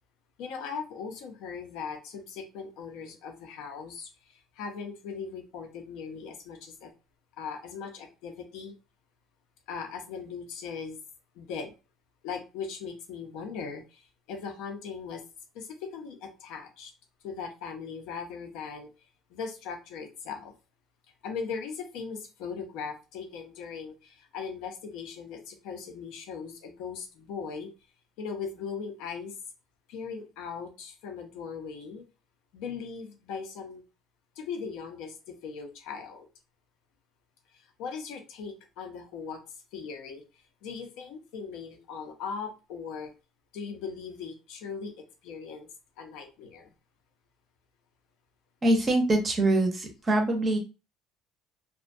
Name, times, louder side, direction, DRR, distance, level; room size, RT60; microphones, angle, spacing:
voice 1, 0.4-4.1 4.6-6.9 7.4-8.7 9.7-11.0 11.4-11.7 12.2-14.0 14.3-15.2 15.5-16.9 17.2-18.9 19.3-20.5 21.2-27.7 28.2-29.3 29.9-32.0 32.5-33.8 34.4-35.1 35.4-36.3 37.8-39.4 39.7-40.2 40.6-43.1 43.5-45.7 46.0-46.7, left 5 dB, 80° left, 5 dB, 0.6 m, -39 dB
voice 2, 48.6-50.6, right 1 dB, 25° right, 3 dB, 0.5 m, -24 dB
2.4 x 2.1 x 2.5 m, 0.30 s
cardioid pair, 150°, 0 cm